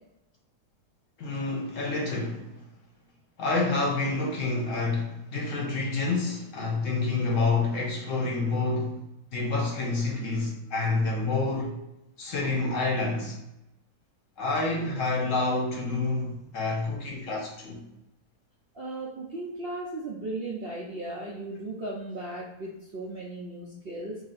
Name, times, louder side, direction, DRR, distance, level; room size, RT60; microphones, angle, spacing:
voice 1, 1.2-2.6 3.4-9.0 9.3-11.7 12.2-13.4 14.4-17.8, left 3 dB, 60° left, 1.0 m, -28 dB
voice 2, 18.7-24.2, right 2 dB, 55° right, 0.7 m, -36 dB
3.1 x 2.8 x 4.1 m
omnidirectional pair, 1.7 m